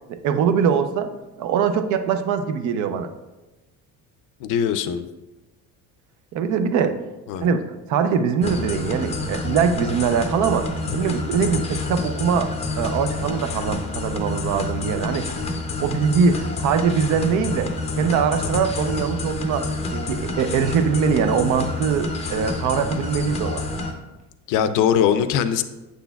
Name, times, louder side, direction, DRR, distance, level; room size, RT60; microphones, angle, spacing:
voice 1, 0.1-1.1 1.4-3.1 6.3-7.0 7.4-15.3 15.8-17.7 18.0-23.6, right 6 dB, 55° right, 9 dB, 0.6 m, -22 dB
voice 2, 4.4-5.0 7.3-7.5 10.9-11.0 24.5-25.6, left 8 dB, 65° left, 11 dB, 0.5 m, -21 dB
sound 1, 8.4-23.9, left 2 dB, 20° left, 0.5 m, -28 dB
8.0 x 6.2 x 2.3 m, 1.1 s
cardioid pair, 160°, 35 cm